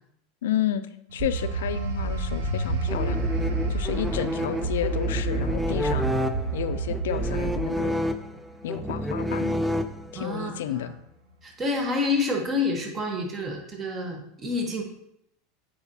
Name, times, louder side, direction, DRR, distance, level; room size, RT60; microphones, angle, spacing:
voice 1, 0.4-3.2 3.7-6.1 6.5-8.0 8.6-9.6 10.1-11.0, left 10 dB, 85° left, 11 dB, 0.4 m, -31 dB
sound 1, 1.1-11.5 11.9-12.2, right 1 dB, 75° right, 0.9 m, -38 dB
sound 2, 1.2-4.2 4.6-7.6, right 3 dB, 50° right, 1.8 m, -29 dB
sound 3, 2.9-10.4, equal, 5° right, 0.3 m, -30 dB
voice 2, 10.1-10.9 11.4-14.8, left 3 dB, 25° right, 2 dB, 1.2 m, -28 dB
8.0 x 4.9 x 2.8 m, 0.75 s
supercardioid pair, 130°, 0 cm